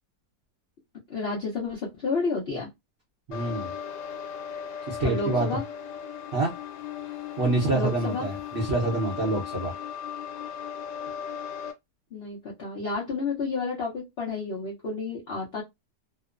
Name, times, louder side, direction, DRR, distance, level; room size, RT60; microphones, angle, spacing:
voice 1, 1.1-2.7 5.0-5.6 7.7-8.3 12.1-15.6, left 4 dB, 65° left, 0.6 m, -31 dB
sound 1, 3.3-11.7, left 8 dB, 85° left, 1.2 m, -37 dB
voice 2, 3.3-3.7 4.9-5.5 6.3-6.5 7.4-9.7, right 2 dB, 55° right, 0.7 m, -26 dB
2.9 x 2.0 x 2.3 m
omnidirectional pair, 1.8 m